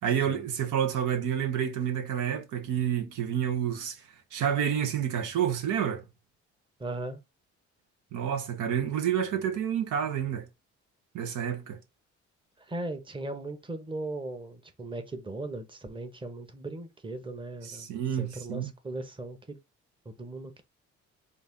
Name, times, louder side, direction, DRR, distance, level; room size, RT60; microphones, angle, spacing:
voice 1, 0.0-4.0 4.3-6.0 8.1-10.5 11.1-11.8 17.6-18.7, right 9 dB, 85° right, 0.9 m, -29 dB
voice 2, 6.8-7.2 12.6-19.6 20.0-20.6, right 2 dB, 15° right, 0.9 m, -38 dB
4.0 x 2.5 x 3.6 m
cardioid pair, 90°, 30 cm